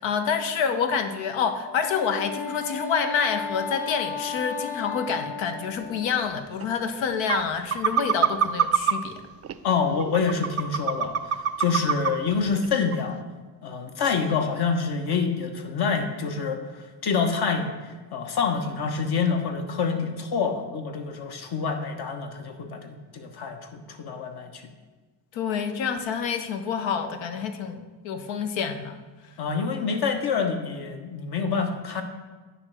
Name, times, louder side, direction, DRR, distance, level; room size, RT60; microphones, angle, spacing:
voice 1, 0.0-9.2 25.3-29.0, left 6 dB, 85° left, 8 dB, 0.8 m, -27 dB
Wind instrument woodwind instrument, 1.6-6.3, left 5 dB, 20° left, 1.0 m, -34 dB
sound 1, 6.6-6.7 7.3-7.4 7.7-8.9 9.4-9.5 10.0-12.1 12.5-12.7 12.9-13.0, right 8 dB, 35° right, 0.4 m, -22 dB
voice 2, 9.6-13.2 13.6-17.7 18.1-24.6 29.4-32.0, left 5 dB, 60° left, 5 dB, 1.2 m, -27 dB
9.5 x 3.4 x 6.2 m, 1.3 s
cardioid pair, 75°, 44 cm